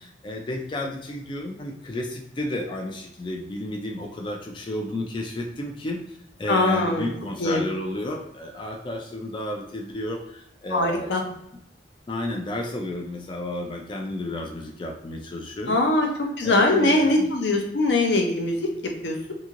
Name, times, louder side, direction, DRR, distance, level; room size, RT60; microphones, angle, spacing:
voice 1, 0.0-11.4 12.1-15.8 16.4-17.3, left 1 dB, 30° left, 2 dB, 0.3 m, -32 dB
voice 2, 6.5-7.1 7.4-7.6 10.7-11.2 15.7-16.1 16.4-18.6 19.0-19.1, left 2 dB, 80° left, 3 dB, 0.6 m, -21 dB
2.9 x 2.7 x 2.4 m, 0.79 s
head